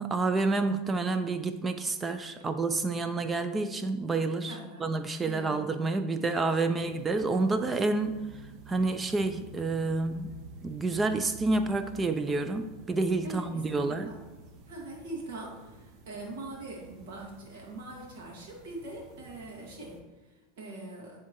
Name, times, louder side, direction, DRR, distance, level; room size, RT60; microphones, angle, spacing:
voice 1, 0.0-4.5 4.8-8.2 8.7-10.3 10.6-14.1, right 3 dB, 20° right, 9 dB, 0.4 m, -29 dB
voice 2, 4.5-4.9 5.2-5.6 6.8-6.9 13.2-14.2 14.6-21.2, right 2 dB, 80° right, -2 dB, 2.0 m, -42 dB
sound 1, 6.8-20.0, right 2 dB, 50° right, 0.9 m, -51 dB
9.8 x 3.6 x 3.1 m, 1.1 s
supercardioid pair, 120°, 0 cm